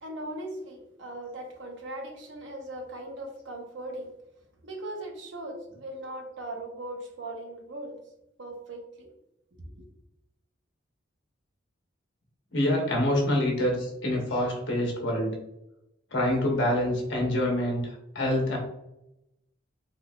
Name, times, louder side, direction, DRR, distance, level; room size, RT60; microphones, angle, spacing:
voice 1, 0.0-4.1 4.6-8.0 8.4-9.1 9.7-9.9, right 1 dB, 70° right, 2 dB, 0.7 m, -39 dB
voice 2, 12.5-15.4 16.1-18.6, left 1 dB, 70° left, 0 dB, 1.1 m, -26 dB
3.8 x 2.8 x 2.3 m, 0.86 s
head